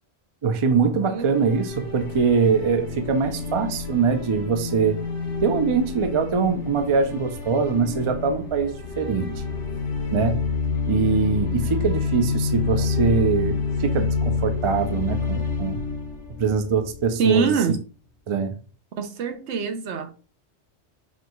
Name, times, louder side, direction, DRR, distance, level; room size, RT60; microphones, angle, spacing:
voice 1, 0.4-5.0 5.4-9.3 10.1-10.4 10.9-15.8 16.4-17.5 18.3-18.5, right 5 dB, 45° right, 0.4 m, -23 dB
sound 1, 1.1-17.2, left 4 dB, 85° left, 1.1 m, -28 dB
voice 2, 17.2-17.8 19.0-20.1, right 5 dB, 75° right, 1.0 m, -24 dB
5.8 x 2.3 x 3.0 m
omnidirectional pair, 1.1 m